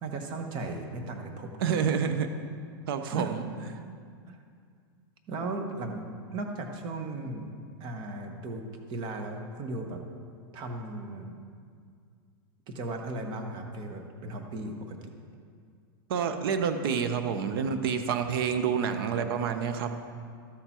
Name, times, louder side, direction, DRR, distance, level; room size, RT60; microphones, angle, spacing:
voice 1, 0.0-1.8 3.1-3.3 4.3-4.4 5.3-7.5 7.8-8.6 8.9-10.0 10.5-11.3 12.7-15.0, right 2 dB, 35° right, 4 dB, 1.2 m, -36 dB
voice 2, 1.6-2.3 2.9-3.4 16.1-19.9, right 7 dB, 70° right, 8 dB, 0.9 m, -28 dB
13.0 x 6.9 x 4.4 m, 2.2 s
supercardioid pair, 140°, 13 cm